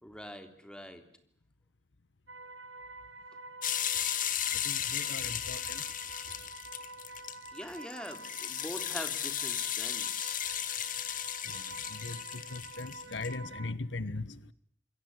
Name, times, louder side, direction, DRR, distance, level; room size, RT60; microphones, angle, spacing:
voice 1, 0.0-1.0 3.9-4.0 4.9-5.0 5.7-5.8 7.5-10.4, equal, 5° left, 3.5 m, -44 dB
sound 1, 2.3-13.7, right 2 dB, 80° right, 2.2 m, -47 dB
sound 2, 3.6-13.3, left 10 dB, 50° left, 2.2 m, -35 dB
voice 2, 4.7-5.8 12.0-12.2 12.5-14.2, left 3 dB, 85° left, 1.2 m, -38 dB
27.5 x 22.5 x 9.7 m
head